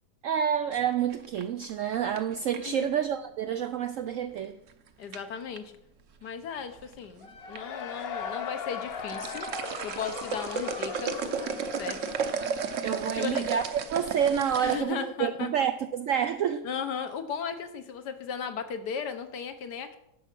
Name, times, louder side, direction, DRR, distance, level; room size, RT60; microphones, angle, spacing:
voice 1, 0.2-4.6 12.8-16.7, right 8 dB, 75° right, 0.7 m, -28 dB
sound 1, 0.7-2.8 4.4-4.7 5.1-5.6 6.5-7.1 7.4-7.6 8.0-8.1 8.8-14.8, right 5 dB, 55° right, 1.0 m, -34 dB
voice 2, 2.5-2.9 5.0-5.6 6.2-9.5 9.8-11.3 11.8-12.1 13.1-13.5 14.6-15.5 16.6-20.0, left 7 dB, 70° left, 1.5 m, -36 dB
Cheering / Crowd, 7.2-13.9, left 6 dB, 50° left, 0.7 m, -39 dB
10.5 x 6.9 x 6.0 m
omnidirectional pair, 1.9 m